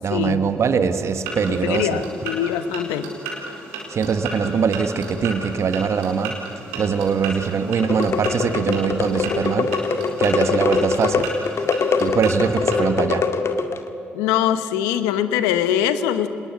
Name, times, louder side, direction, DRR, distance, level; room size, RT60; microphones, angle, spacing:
voice 1, 0.0-2.0 3.9-6.4 6.7-9.9 10.2-11.3 12.0-13.2, right 6 dB, 60° right, 10 dB, 1.6 m, -22 dB
sound 1, 1.1-12.8, right 3 dB, 90° right, 4.3 m, -34 dB
voice 2, 1.5-3.1 14.1-16.3, left 10 dB, 85° left, 11 dB, 1.1 m, -22 dB
sound 2, 7.8-13.9, left 5 dB, 55° left, 1.9 m, -23 dB
26.0 x 20.5 x 8.3 m, 2.9 s
hypercardioid pair, 45°, 6 cm